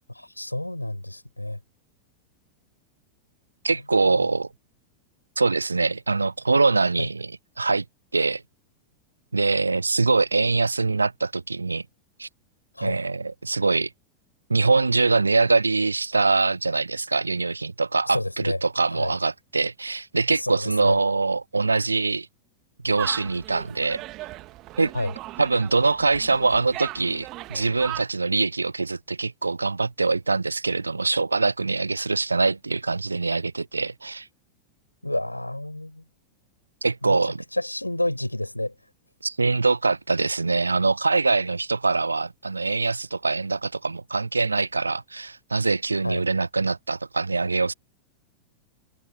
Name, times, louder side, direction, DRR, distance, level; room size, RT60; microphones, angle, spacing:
voice 1, 0.1-1.6 4.0-4.3 7.0-7.1 12.7-13.0 18.1-18.6 18.9-19.1 20.3-21.0 24.9-25.1 35.0-36.0 37.0-38.7 46.0-46.2, left 1 dB, 85° left, 7.8 m, -30 dB
voice 2, 3.6-4.5 5.4-7.8 8.1-8.4 9.3-11.8 12.2-12.3 12.8-13.9 14.5-22.3 22.8-24.0 24.8-24.9 25.4-34.3 36.8-37.4 39.2-47.7, right 3 dB, 80° right, 1.0 m, -23 dB
sound 1, 23.0-28.0, right 18 dB, 40° right, 1.9 m, -38 dB
figure-of-eight pair, 90°, 0 cm